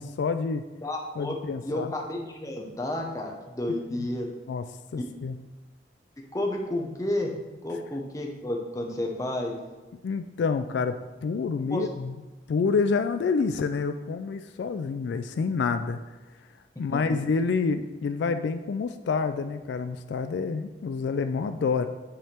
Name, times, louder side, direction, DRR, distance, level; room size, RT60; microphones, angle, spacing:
voice 1, 0.0-0.6 1.2-1.9 4.0-4.1 4.5-4.6 4.9-5.4 10.0-11.0 11.2-12.1 12.5-16.0 16.8-21.9, left 5 dB, 70° left, 9 dB, 0.3 m, -28 dB
voice 2, 0.8-4.3 4.9-5.0 6.3-7.3 7.6-9.6 11.7-11.9, left 1 dB, 20° left, 1 dB, 0.7 m, -31 dB
8.9 x 3.5 x 4.4 m, 1.2 s
head